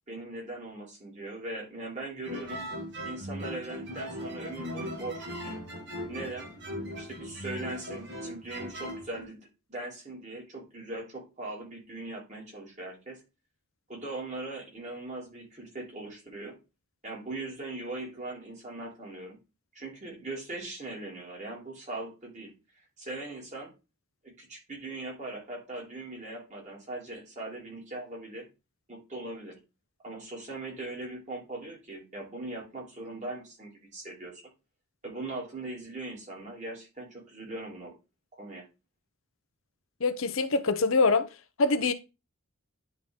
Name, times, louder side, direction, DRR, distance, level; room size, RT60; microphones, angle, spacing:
voice 1, 0.1-2.6 3.0-5.6 6.1-6.5 6.9-13.2 13.9-16.6 17.0-19.4 19.7-22.5 23.0-23.7 24.2-28.5 28.9-29.6 30.0-34.4 35.0-37.9 38.3-38.7, right 2 dB, 35° right, 2.8 m, -40 dB
sound 1, 2.2-9.3, equal, 55° right, 1.7 m, -39 dB
voice 2, 40.0-41.3 41.6-41.9, left 3 dB, 75° left, 0.7 m, -24 dB
10.0 x 3.7 x 3.7 m
head